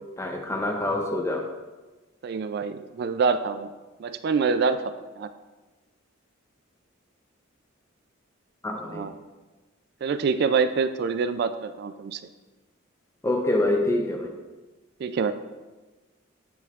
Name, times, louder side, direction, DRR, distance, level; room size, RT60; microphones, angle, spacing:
voice 1, 0.2-1.4 8.6-9.1 13.2-14.3, left 1 dB, 15° left, 2 dB, 0.6 m, -26 dB
voice 2, 2.2-3.7 4.0-4.8 5.2-5.3 8.9-9.1 10.0-12.2 15.0-15.3, right 5 dB, 50° right, 11 dB, 0.3 m, -25 dB
7.9 x 7.0 x 2.4 m, 1.2 s
head